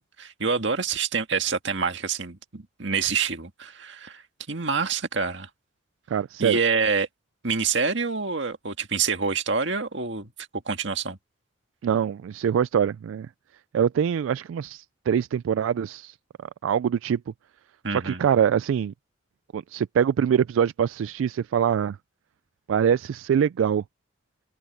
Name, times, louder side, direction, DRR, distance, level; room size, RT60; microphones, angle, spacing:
voice 1, 0.0-4.2 4.5-5.5 6.4-7.1 7.4-10.3 10.7-11.2 17.8-18.3, right 5 dB, 65° right, 1.9 m, -27 dB
voice 2, 6.1-6.6 11.8-13.3 13.7-16.2 16.6-17.2 17.9-18.9 19.5-22.0 22.7-23.8, right 8 dB, 85° right, 0.3 m, -24 dB
open air
head